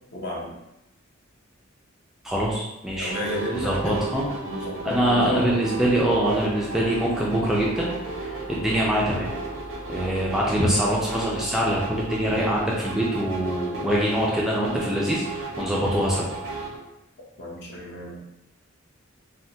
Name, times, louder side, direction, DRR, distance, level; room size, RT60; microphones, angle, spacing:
voice 1, 0.1-0.5 3.0-3.8 4.5-5.6 17.4-18.2, left 1 dB, 55° left, -2 dB, 0.7 m, -32 dB
voice 2, 2.2-3.1 3.5-4.3 4.8-7.9 8.2-9.3 9.9-16.3, equal, ahead, -5 dB, 0.4 m, -24 dB
sound 1, 3.0-16.8, right 3 dB, 85° right, 0.8 m, -34 dB
3.4 x 2.2 x 2.7 m, 0.89 s
head